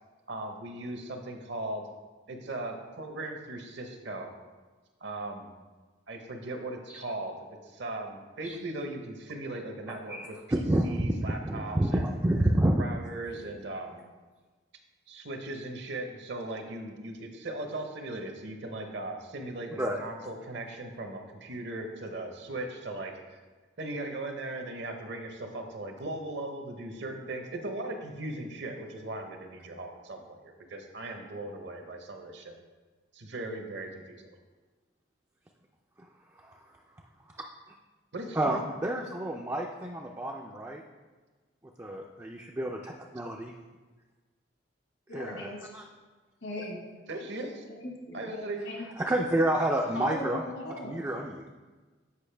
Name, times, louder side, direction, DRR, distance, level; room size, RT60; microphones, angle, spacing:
voice 1, 0.3-1.8 2.3-4.3 5.0-5.5 6.1-12.0 12.8-14.0 15.1-23.1 23.8-32.6 33.1-33.9 38.1-38.6 47.1-47.6 48.1-48.6, right 2 dB, 60° right, 4 dB, 0.8 m, -38 dB
voice 2, 10.1-10.9 11.4-12.9 19.8-20.0 36.4-36.6 38.3-40.8 41.8-43.5 45.1-45.8 49.0-50.4 50.8-51.5, right 1 dB, 15° right, 0 dB, 0.3 m, -29 dB
voice 3, 45.1-45.7 46.4-46.8 47.7-48.3 48.6-48.8 49.9-51.0, left 1 dB, 70° left, -1 dB, 1.4 m, -38 dB
8.3 x 5.1 x 3.3 m, 1.3 s
head